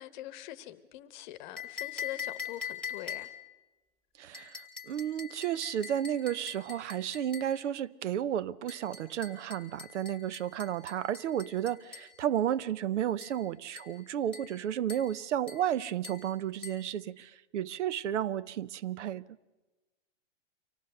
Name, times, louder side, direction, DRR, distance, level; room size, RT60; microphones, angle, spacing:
voice 1, 0.0-3.3, left 14 dB, 40° left, 1.0 m, -43 dB
sound 1, 1.6-3.5 4.3-7.6 8.7-12.1 13.2-13.4 13.8-14.0 14.3-14.6 14.9-15.2 15.5-15.7 16.0-16.3 16.6-16.9, left 7 dB, 5° left, 1.7 m, -43 dB
voice 2, 4.2-19.3, right 10 dB, 80° right, 0.8 m, -32 dB
25.0 x 17.5 x 6.6 m
hypercardioid pair, 150°, 35 cm